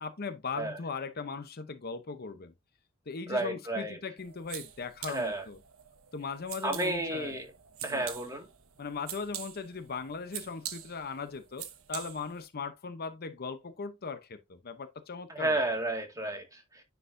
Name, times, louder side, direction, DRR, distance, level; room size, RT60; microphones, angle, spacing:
voice 1, 0.0-2.5 3.1-5.6 6.1-7.4 7.8-8.0 8.8-15.6, left 5 dB, 50° left, 0.8 m, -39 dB
voice 2, 3.3-4.0 5.1-5.4 6.6-7.5 7.8-8.5 15.3-16.8, right 2 dB, 15° right, 1.9 m, -32 dB
sound 1, 4.2-12.5, right 11 dB, 80° right, 1.1 m, -45 dB
9.9 x 4.7 x 2.6 m
head